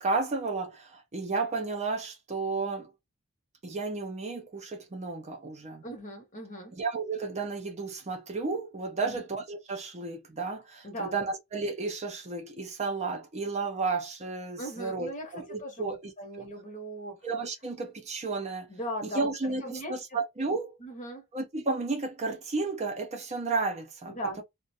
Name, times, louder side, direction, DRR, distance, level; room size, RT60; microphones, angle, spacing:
voice 1, 0.0-2.9 3.6-5.8 6.7-16.1 16.4-16.5 17.2-18.7 19.0-20.8 21.3-24.4, right 3 dB, 30° right, 0.6 m, -33 dB
voice 2, 5.8-6.7 9.0-9.2 10.8-11.3 14.6-17.2 18.7-19.3 19.6-20.0 20.8-21.2 24.1-24.4, right 1 dB, 35° left, 0.9 m, -38 dB
2.4 x 2.1 x 2.7 m
head